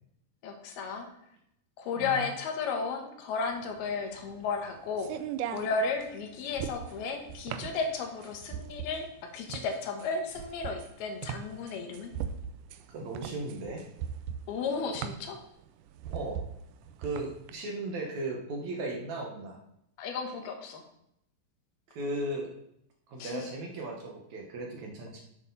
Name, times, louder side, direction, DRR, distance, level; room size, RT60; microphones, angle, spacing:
voice 1, 0.4-1.1 1.8-5.2 5.4-9.1 9.3-12.1 14.5-15.4 20.0-20.8 23.2-23.5, left 4 dB, 85° left, 4 dB, 3.4 m, -34 dB
voice 2, 2.0-2.3 12.9-13.8 16.1-16.4 17.0-19.6 21.9-22.5 23.1-25.2, right 2 dB, 60° right, 0 dB, 2.5 m, -36 dB
sound 1, 3.6-17.5, right 9 dB, 90° right, 1.8 m, -40 dB
11.5 x 8.3 x 4.1 m, 0.77 s
omnidirectional pair, 4.3 m